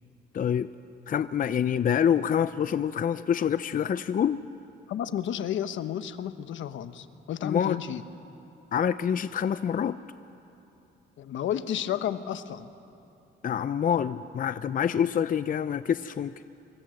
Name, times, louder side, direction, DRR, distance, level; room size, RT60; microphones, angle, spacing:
voice 1, 0.3-0.7 1.1-4.4 7.4-7.8 8.7-10.0 13.4-16.3, left 8 dB, 45° left, 13 dB, 0.6 m, -26 dB
voice 2, 4.9-8.0 11.2-12.7, left 10 dB, 75° left, 11 dB, 1.2 m, -32 dB
25.5 x 24.0 x 7.8 m, 2.9 s
cardioid pair, 90°, 20 cm